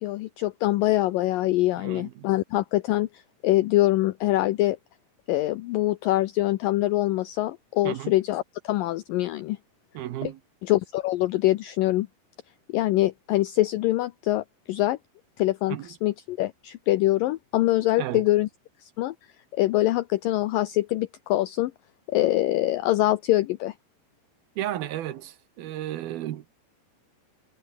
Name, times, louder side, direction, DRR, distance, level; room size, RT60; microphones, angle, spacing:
voice 1, 0.0-4.8 5.3-9.6 10.6-12.1 12.7-15.0 15.4-18.5 18.8-19.1 19.5-21.7 22.1-23.7, left 16 dB, 85° left, 2.0 m, -24 dB
voice 2, 1.8-2.3 7.8-8.1 9.9-10.4 15.7-15.9 18.0-18.2 24.6-26.5, right 13 dB, 70° right, 2.9 m, -33 dB
omnidirectional pair, 4.9 m